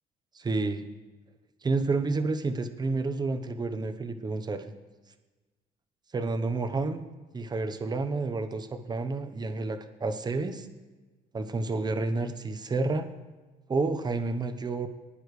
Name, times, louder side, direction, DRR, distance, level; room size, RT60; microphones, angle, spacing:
voice 1, 0.3-0.8 1.6-4.6 6.1-7.0 7.3-10.7 11.3-13.1 13.7-14.9, right 3 dB, 25° right, 7 dB, 0.9 m, -30 dB
20.5 x 10.0 x 3.3 m, 1.3 s
cardioid pair, 110°, 17 cm